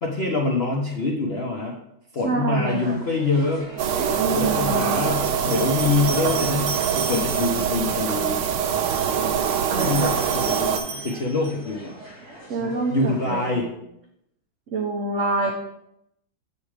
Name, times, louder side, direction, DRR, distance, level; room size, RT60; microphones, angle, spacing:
voice 1, 0.0-1.8 2.1-3.7 4.4-8.4 9.8-11.9 12.6-13.7, left 3 dB, 70° left, -1 dB, 0.5 m, -25 dB
voice 2, 2.2-3.0 4.1-4.9 9.7-10.2 12.5-13.7 14.7-15.5, right 3 dB, 70° right, 1 dB, 0.7 m, -27 dB
sound 1, 2.7-13.5, right 1 dB, 30° right, 2.9 m, -41 dB
sound 2, 3.8-10.8, right 7 dB, 85° right, 1.5 m, -24 dB
sound 3, 4.9-7.7 8.7-11.7, right 5 dB, 50° right, 1.2 m, -35 dB
7.3 x 4.2 x 4.8 m, 0.80 s
omnidirectional pair, 2.3 m